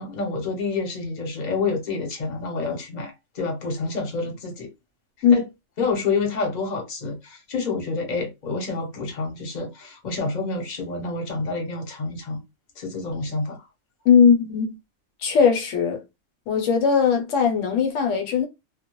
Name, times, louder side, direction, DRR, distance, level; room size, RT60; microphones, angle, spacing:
voice 1, 0.0-4.7 5.3-5.5 5.8-12.4 12.8-13.7, left 4 dB, 40° left, 0.7 m, -28 dB
voice 2, 14.1-14.8 15.2-16.0 16.5-18.4, left 6 dB, 70° left, 0.9 m, -19 dB
2.2 x 2.0 x 2.9 m
omnidirectional pair, 1.4 m